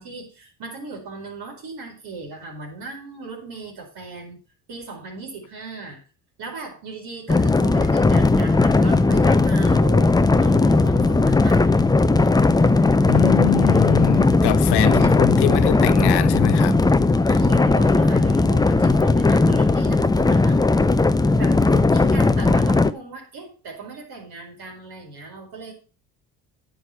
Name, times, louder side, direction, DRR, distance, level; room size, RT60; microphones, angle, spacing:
voice 1, 0.0-4.4 4.7-6.0 6.4-11.6 14.8-15.7 17.3-20.6 21.4-25.7, right 4 dB, 60° right, 4.9 m, -37 dB
sound 1, 7.3-22.9, left 3 dB, 10° left, 0.6 m, -17 dB
voice 2, 13.1-16.8, left 15 dB, 65° left, 1.0 m, -23 dB
9.9 x 6.4 x 5.8 m
hypercardioid pair, 65°, 44 cm